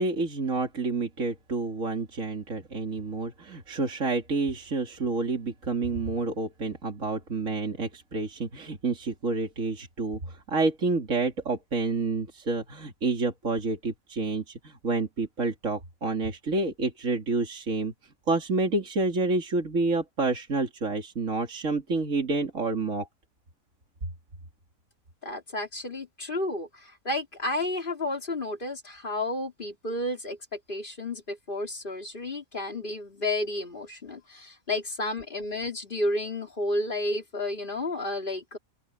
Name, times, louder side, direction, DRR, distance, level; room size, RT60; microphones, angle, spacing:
voice 1, 0.0-17.9 18.3-23.1, right 3 dB, 65° right, 3.0 m, -29 dB
voice 2, 25.2-38.6, left 2 dB, 35° left, 3.1 m, -31 dB
open air
omnidirectional pair, 1.5 m